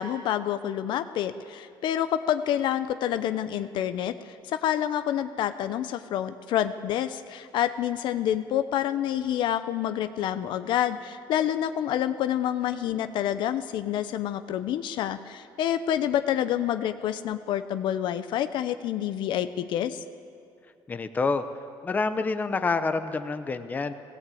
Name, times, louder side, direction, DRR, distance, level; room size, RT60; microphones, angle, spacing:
voice 1, 0.0-20.0, left 10 dB, 65° left, 11 dB, 0.7 m, -28 dB
voice 2, 20.9-21.4 21.8-23.9, left 4 dB, 20° left, 9 dB, 0.8 m, -27 dB
18.5 x 17.0 x 8.5 m, 2.4 s
cardioid pair, 155°, 9 cm